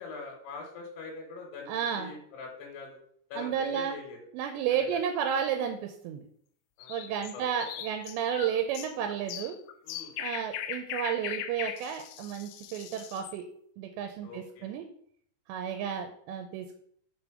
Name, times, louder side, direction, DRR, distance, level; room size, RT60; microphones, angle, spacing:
voice 1, 0.0-3.0 3.3-4.2 4.8-5.0 6.8-7.7 9.8-10.2 14.2-14.8 15.7-16.0, left 4 dB, 75° left, -1 dB, 3.1 m, -44 dB
voice 2, 1.7-2.1 3.4-4.0 4.3-6.3 6.9-9.6 10.2-13.5 13.8-14.9 15.5-16.8, right 8 dB, 85° right, 6 dB, 2.8 m, -32 dB
sound 1, 6.8-13.4, left 11 dB, 90° left, 2.2 m, -39 dB
5.8 x 5.2 x 4.8 m, 0.66 s
omnidirectional pair, 5.1 m